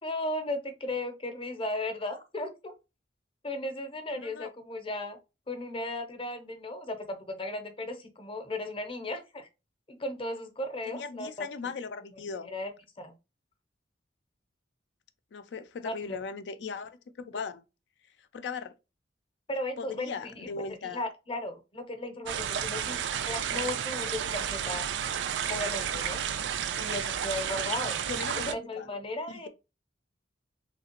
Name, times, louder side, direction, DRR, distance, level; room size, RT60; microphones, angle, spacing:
voice 1, 0.0-2.7 3.4-5.2 5.5-9.5 9.9-11.7 12.3-12.7 13.0-13.1 15.8-16.2 19.5-24.9 25.5-26.2 26.8-28.0 28.4-29.5, left 1 dB, 30° left, 0.7 m, -36 dB
voice 2, 4.1-4.5 10.9-12.5 15.3-17.6 18.3-18.7 19.8-21.0 28.1-28.9 29.3-29.5, left 5 dB, 75° left, 0.4 m, -38 dB
sound 1, 22.3-28.5, right 8 dB, 80° right, 0.4 m, -32 dB
3.2 x 2.8 x 2.8 m
head